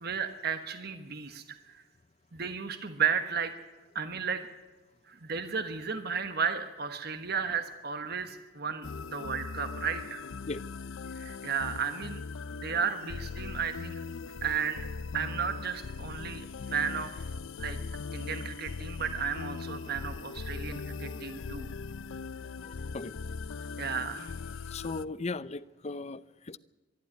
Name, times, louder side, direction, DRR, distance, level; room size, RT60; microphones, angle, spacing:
voice 1, 0.0-1.8 2.3-3.5 3.9-4.5 5.1-10.2 11.2-12.2 12.6-14.0 14.4-14.9 15.1-17.2 17.6-17.8 18.1-21.7 23.8-24.3, right 6 dB, 55° right, 8 dB, 1.3 m, -33 dB
sound 1, 8.8-25.0, left 4 dB, 80° left, 0.5 m, -40 dB
voice 2, 22.6-23.1 24.7-26.6, left 3 dB, 35° left, 15 dB, 0.6 m, -37 dB
23.5 x 12.0 x 9.7 m, 1.2 s
head